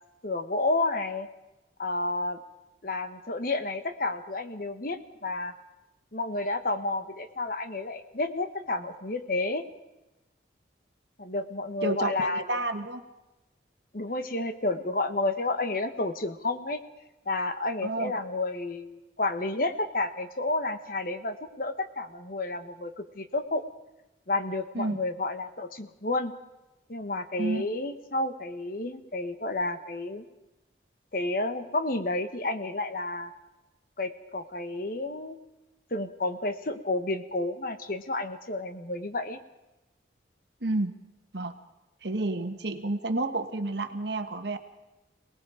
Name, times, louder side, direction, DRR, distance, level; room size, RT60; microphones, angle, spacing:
voice 1, 0.2-1.3 1.8-2.4 2.8-5.5 6.1-9.6 11.2-12.7 13.9-16.8 17.3-23.6 24.3-26.3 26.9-30.3 31.1-33.3 34.0-35.4 35.9-39.4, left 2 dB, 50° left, 9 dB, 1.3 m, -31 dB
voice 2, 11.8-13.0 17.8-18.1 24.7-25.0 27.4-27.6 40.6-40.9 41.3-41.5 42.0-44.6, right 2 dB, 70° right, 7 dB, 1.6 m, -30 dB
28.0 x 19.0 x 5.1 m, 1.0 s
head